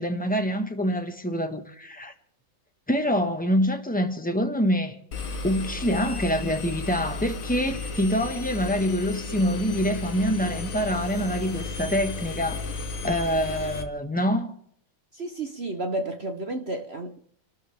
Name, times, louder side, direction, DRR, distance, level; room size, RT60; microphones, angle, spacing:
voice 1, 0.0-2.1 2.9-5.0 5.4-12.6 13.0-14.5, equal, 5° left, 1.1 m, -25 dB
Engine, 5.1-13.8, left 3 dB, 45° left, 1.4 m, -34 dB
voice 2, 15.1-17.2, right 2 dB, 50° right, 0.8 m, -31 dB
29.0 x 12.5 x 3.5 m
omnidirectional pair, 2.3 m